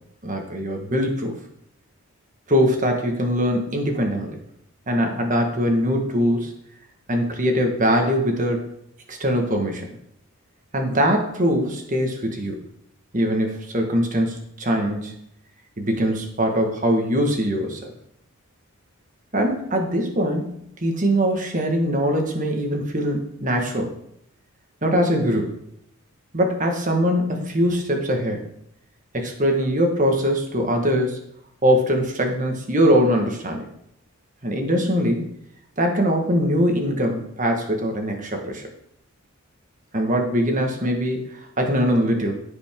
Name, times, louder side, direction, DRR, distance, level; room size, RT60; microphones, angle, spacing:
voice 1, 0.2-1.3 2.5-4.4 4.9-6.5 7.1-8.6 9.1-9.9 10.7-12.6 13.1-15.2 15.8-17.8 19.3-23.9 24.8-25.6 26.3-28.5 29.1-31.2 31.6-33.7 34.4-35.3 35.8-38.7 39.9-42.3, equal, 35° right, 3 dB, 1.5 m, -22 dB
15.0 x 5.2 x 3.7 m, 0.75 s
head